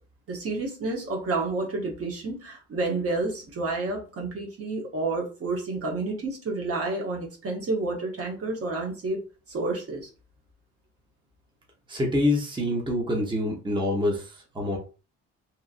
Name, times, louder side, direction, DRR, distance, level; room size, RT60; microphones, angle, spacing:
voice 1, 0.3-9.2 9.5-10.1, right 3 dB, 50° right, 0 dB, 1.0 m, -30 dB
voice 2, 11.9-14.8, left 1 dB, 15° right, -1 dB, 0.8 m, -26 dB
2.9 x 2.5 x 2.5 m, 0.34 s
cardioid pair, 90°, 30 cm